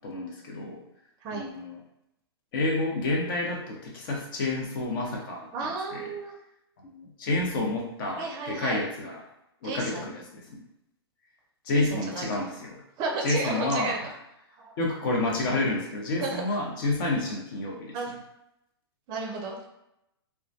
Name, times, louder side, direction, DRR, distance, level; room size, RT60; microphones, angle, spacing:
voice 1, 0.0-0.8 1.3-1.8 2.5-5.5 5.9-6.1 6.8-9.2 9.6-10.6 11.6-12.8 13.2-14.0 14.8-18.0, left 2 dB, 50° left, -1 dB, 0.8 m, -29 dB
voice 2, 5.5-6.4 8.2-8.8 9.6-10.1 11.7-12.4 13.0-14.0 14.6-14.7 16.2-16.6 17.9-18.2 19.1-19.7, right 4 dB, 30° right, 1 dB, 0.5 m, -33 dB
2.2 x 2.2 x 2.6 m, 0.84 s
hypercardioid pair, 115°, 14 cm